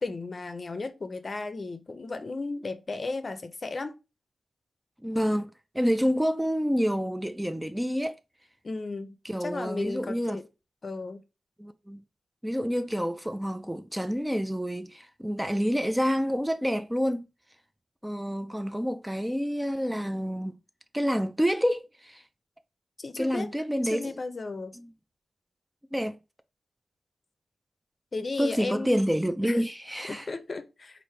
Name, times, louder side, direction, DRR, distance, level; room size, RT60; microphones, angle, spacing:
voice 1, 0.0-3.9 8.6-10.4 10.8-11.2 23.0-23.5 23.9-24.8 28.1-29.0 29.4-29.6 30.1-31.0, left 3 dB, 45° left, 0.6 m, -35 dB
voice 2, 5.0-8.2 9.2-10.4 11.6-12.0 12.4-17.3 18.0-20.6 20.9-22.2 23.2-24.2 24.8-24.9 25.9-26.2 28.4-30.3, equal, 5° right, 0.3 m, -28 dB
4.5 x 2.5 x 3.2 m
wide cardioid pair, 95°, 0 cm